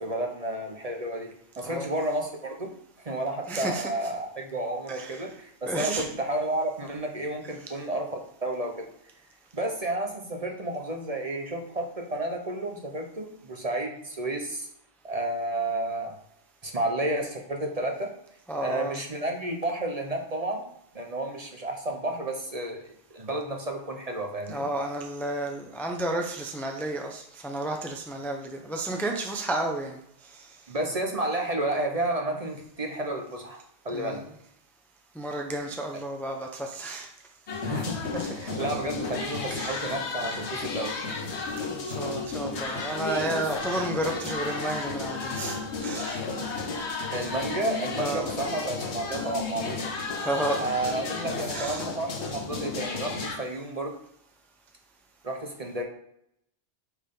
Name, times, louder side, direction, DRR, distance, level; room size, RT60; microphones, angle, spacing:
voice 1, 0.0-2.7 3.0-8.9 9.5-14.7 15.0-16.2 16.6-18.1 18.6-20.7 20.9-24.7 30.7-33.6 33.8-34.2 37.6-41.0 47.1-49.8 50.1-50.2 50.6-53.9 55.2-55.8, right 1 dB, 35° right, 2 dB, 1.1 m, -31 dB
voice 2, 3.5-3.9 4.9-5.3 5.7-6.1 18.5-19.0 24.5-30.0 30.3-30.4 33.9-34.2 35.1-37.1 38.2-38.5 39.5-39.9 41.7-45.6 45.8-46.2 48.0-48.3 50.1-50.9 51.5-51.8, right 2 dB, ahead, 2 dB, 0.6 m, -32 dB
sound 1, 37.5-53.4, left 4 dB, 70° left, 1.4 m, -33 dB
8.8 x 4.7 x 3.8 m, 0.73 s
omnidirectional pair, 1.2 m